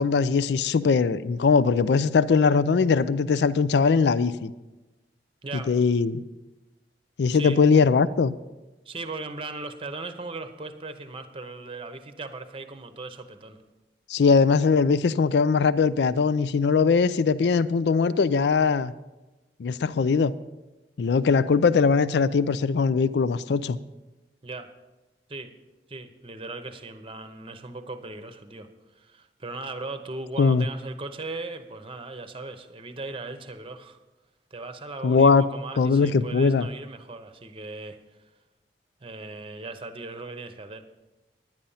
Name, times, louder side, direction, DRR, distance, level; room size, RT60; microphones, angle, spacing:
voice 1, 0.0-4.5 5.7-6.2 7.2-8.3 14.1-18.9 19.6-20.3 21.0-23.8 30.4-30.7 35.0-35.5 35.8-36.7, left 5 dB, 70° left, 16 dB, 0.4 m, -21 dB
voice 2, 7.3-7.6 8.8-13.6 24.4-24.7 25.3-25.5 25.9-28.7 28.9-34.0 34.5-38.0 39.0-40.8, right 3 dB, 30° right, 9 dB, 0.8 m, -38 dB
10.5 x 10.0 x 5.5 m, 1.1 s
head